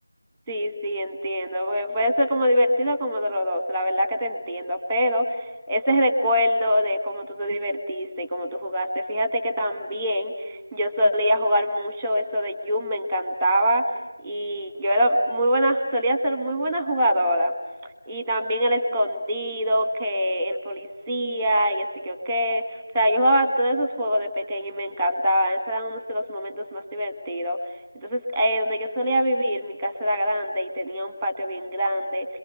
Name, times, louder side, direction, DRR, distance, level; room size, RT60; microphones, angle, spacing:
voice 1, 0.5-13.8 14.2-17.5 18.1-22.6 22.9-27.6 28.0-32.3, equal, 5° right, 8 dB, 1.7 m, -24 dB
28.0 x 23.0 x 8.0 m, 1.1 s
figure-of-eight pair, 170°, 0 cm